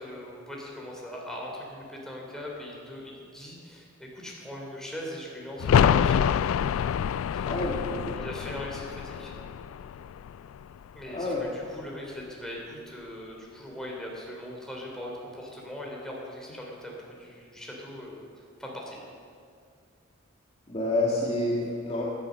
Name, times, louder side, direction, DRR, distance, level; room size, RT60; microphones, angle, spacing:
voice 1, 0.0-6.4 7.3-7.5 8.1-9.3 10.9-18.2 18.6-19.0, left 1 dB, 5° left, -3 dB, 3.2 m, -40 dB
sound 1, 5.6-11.2 11.5-11.6, left 8 dB, 75° left, 0.3 m, -26 dB
voice 2, 7.5-8.2 11.1-11.5 20.7-22.0, left 2 dB, 30° left, -4 dB, 1.8 m, -28 dB
17.5 x 11.0 x 6.4 m, 2.2 s
head